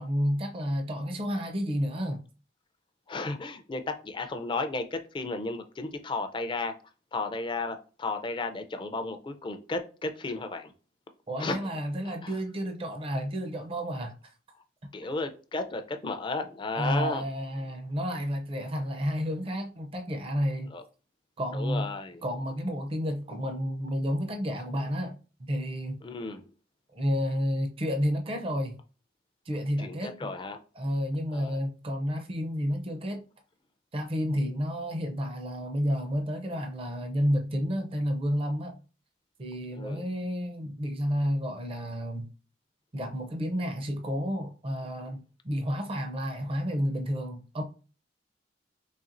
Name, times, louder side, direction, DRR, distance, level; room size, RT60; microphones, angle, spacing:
voice 1, 0.0-2.2 11.3-14.1 16.7-20.7 21.4-21.9 22.2-26.0 26.9-28.8 29.5-30.3 30.8-33.2 33.9-38.8 39.4-42.3 42.9-47.6, equal, 30° right, 0.5 m, -31 dB
voice 2, 3.1-6.7 7.1-10.7 11.4-11.7 12.0-12.3 14.9-17.3 20.7-20.8 21.5-22.2 26.0-26.4 29.8-30.6 31.3-31.6 39.7-40.0, left 3 dB, 25° left, 0.4 m, -34 dB
4.1 x 3.1 x 2.5 m
head